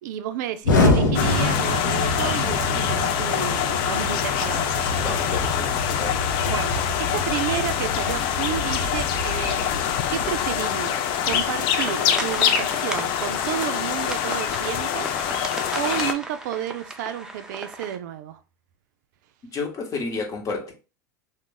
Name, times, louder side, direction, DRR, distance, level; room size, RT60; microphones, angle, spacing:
voice 1, 0.0-4.8 6.5-9.7 10.1-15.1 15.8-18.4, right 11 dB, 70° right, 0.4 m, -31 dB
Explosion, 0.6-10.6, left 2 dB, 85° left, 0.7 m, -26 dB
sound 1, 1.1-16.1, left 9 dB, 55° left, 0.4 m, -25 dB
voice 2, 5.0-6.2 19.5-20.7, left 4 dB, 35° left, 0.9 m, -31 dB
sound 2, 11.8-18.0, right 2 dB, 5° right, 0.5 m, -35 dB
2.4 x 2.1 x 3.7 m
hypercardioid pair, 90°, 10 cm